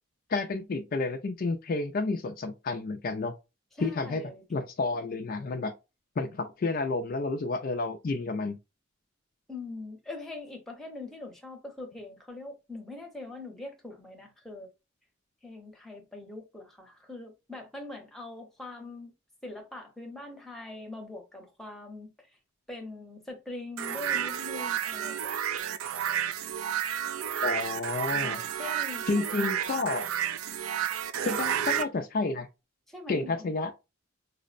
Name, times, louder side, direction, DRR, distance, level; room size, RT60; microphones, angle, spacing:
voice 1, 0.3-3.4 3.8-5.7 6.2-8.6 27.4-28.4 29.1-30.1 31.2-32.5 33.1-33.7, left 3 dB, 45° left, 0.4 m, -30 dB
voice 2, 3.8-4.4 9.5-14.7 15.4-19.1 19.4-22.1 22.7-25.4 28.1-29.5 31.2-31.4 32.9-33.4, left 2 dB, ahead, 0.7 m, -42 dB
sound 1, 23.8-31.9, right 9 dB, 90° right, 0.4 m, -31 dB
4.4 x 2.0 x 2.4 m
head